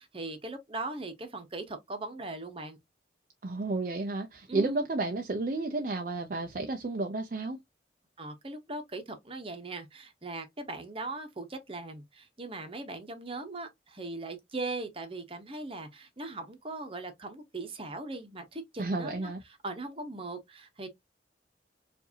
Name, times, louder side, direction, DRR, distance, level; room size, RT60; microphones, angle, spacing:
voice 1, 0.0-2.8 4.5-4.9 8.2-19.3 19.6-20.9, right 2 dB, 30° right, 0.9 m, -39 dB
voice 2, 3.4-7.6 18.8-19.4, right 3 dB, 45° right, 0.5 m, -32 dB
4.7 x 2.6 x 2.7 m
head